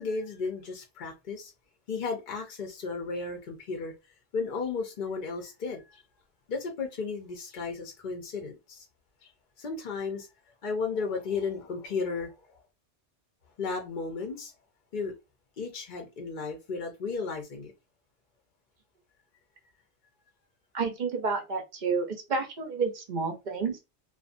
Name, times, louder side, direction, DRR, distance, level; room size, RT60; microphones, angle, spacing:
voice 1, 0.0-1.5 1.9-3.9 4.3-6.0 6.5-8.9 9.2-9.3 9.6-10.3 10.6-12.6 13.6-14.5 14.9-15.1 15.6-17.7, left 4 dB, 50° left, 0.7 m, -34 dB
voice 2, 20.7-23.8, right 4 dB, 50° right, 0.8 m, -30 dB
2.5 x 2.3 x 2.5 m
omnidirectional pair, 1.2 m